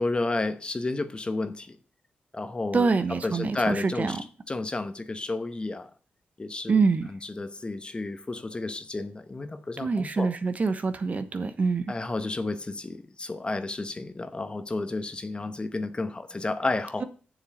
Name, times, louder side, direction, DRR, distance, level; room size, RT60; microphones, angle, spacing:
voice 1, 0.0-1.8 2.3-2.9 3.2-4.2 4.5-5.9 6.4-6.8 7.1-10.3 11.9-17.0, left 2 dB, 25° left, 1.0 m, -31 dB
voice 2, 2.7-4.2 6.7-7.1 9.8-11.9, right 4 dB, 40° right, 1.1 m, -25 dB
7.2 x 7.1 x 6.4 m
cardioid pair, 80°, 4 cm